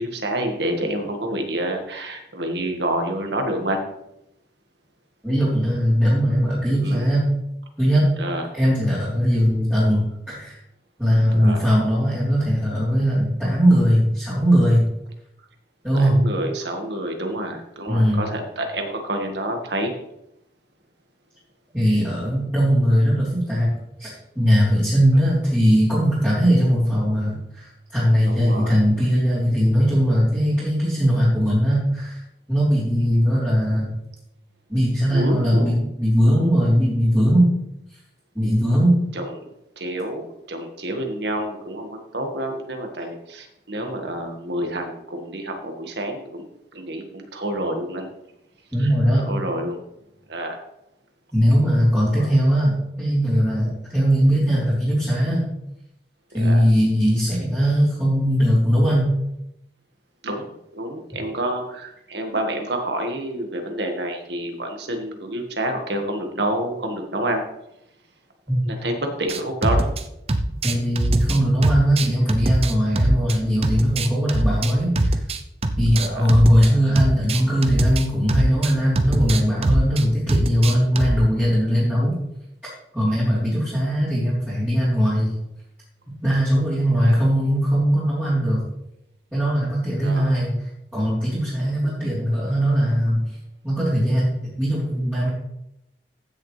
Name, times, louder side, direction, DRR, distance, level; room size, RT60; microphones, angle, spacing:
voice 1, 0.0-3.8 6.8-7.1 8.2-8.5 11.3-11.6 15.9-19.9 28.3-28.8 35.1-35.7 36.2-36.6 39.1-46.4 46.7-48.1 49.3-49.8 50.3-50.6 52.1-52.3 56.3-56.6 60.2-67.4 68.6-69.9 76.0-76.7 87.0-87.2 90.0-90.3, right 1 dB, 80° right, 4 dB, 1.7 m, -28 dB
voice 2, 5.2-7.2 7.8-8.1 8.5-10.6 11.0-14.8 15.8-16.2 17.9-18.3 21.7-23.7 24.0-32.2 32.5-33.9 34.7-37.5 38.4-39.0 48.7-49.3 51.3-55.5 56.3-59.1 68.5-68.6 70.6-75.2 75.8-82.2 82.9-85.3 86.2-88.6 89.3-90.6 90.9-93.4 93.6-95.3, equal, 10° right, -13 dB, 3.6 m, -19 dB
sound 1, 69.3-70.0 70.3-73.4 73.6-76.7 77.0-81.3, right 1 dB, 35° right, 0.6 m, -22 dB
15.0 x 6.8 x 3.3 m, 0.84 s
head